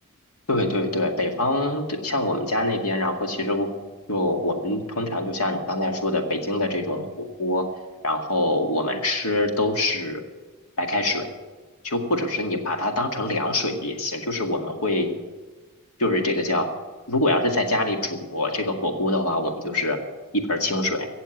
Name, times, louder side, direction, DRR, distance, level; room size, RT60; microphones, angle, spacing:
voice 1, 0.5-3.7 4.1-7.7 8.0-10.2 10.8-11.3 11.8-15.1 16.0-16.7 17.1-20.0 20.3-21.1, left 1 dB, 75° left, 4 dB, 2.1 m, -24 dB
17.0 x 7.2 x 9.9 m, 1.3 s
head